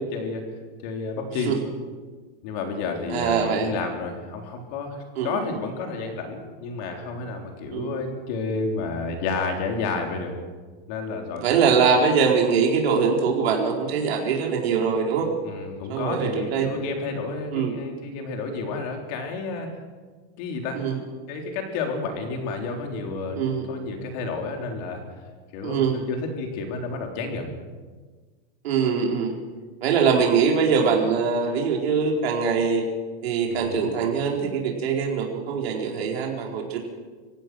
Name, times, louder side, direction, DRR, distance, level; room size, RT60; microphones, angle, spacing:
voice 1, 0.1-0.4 0.8-1.5 2.4-5.0 5.2-10.3 10.9-11.8 15.4-19.7 20.4-20.8 21.3-25.0 25.5-27.5 33.5-33.9, left 4 dB, 40° left, 3 dB, 3.7 m, -31 dB
voice 2, 3.1-3.7 5.2-5.4 7.7-7.9 11.3-15.3 15.9-16.7 17.5-17.7 20.7-21.0 23.4-23.7 25.6-26.0 28.6-29.4 29.8-32.8 33.2-36.8, right 6 dB, 80° right, 0 dB, 4.4 m, -23 dB
24.5 x 17.0 x 6.3 m, 1.4 s
supercardioid pair, 175°, 30 cm